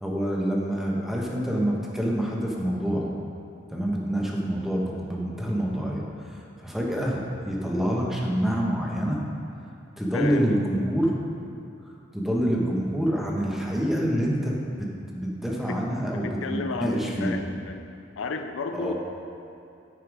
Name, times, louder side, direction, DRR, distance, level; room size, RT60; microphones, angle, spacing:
voice 1, 0.0-3.1 3.7-9.2 10.0-11.2 11.9-14.9 15.1-17.4 18.7-18.9, equal, ahead, -3 dB, 1.1 m, -27 dB
voice 2, 10.1-10.6 15.7-15.8 16.1-17.8 18.2-18.9, left 4 dB, 80° left, 6 dB, 0.5 m, -32 dB
9.7 x 5.8 x 4.8 m, 2.6 s
head